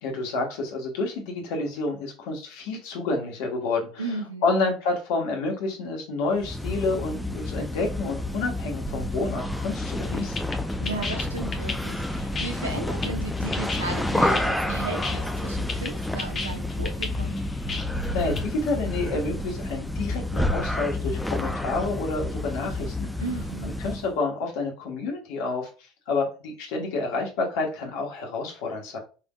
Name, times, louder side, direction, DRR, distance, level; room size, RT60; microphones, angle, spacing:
voice 1, 0.0-4.0 4.4-10.5 18.1-23.1 23.6-29.0, left 3 dB, 60° left, 1 dB, 1.5 m, -29 dB
voice 2, 4.0-4.5 10.8-17.4 23.2-23.7, right 3 dB, 85° right, 3 dB, 1.0 m, -35 dB
sound 1, 6.4-24.1, left 1 dB, 5° left, 0.6 m, -29 dB
sound 2, 9.9-18.4, left 3 dB, 35° left, 0.9 m, -35 dB
5.5 x 3.6 x 2.4 m, 0.35 s
figure-of-eight pair, 65°, 0 cm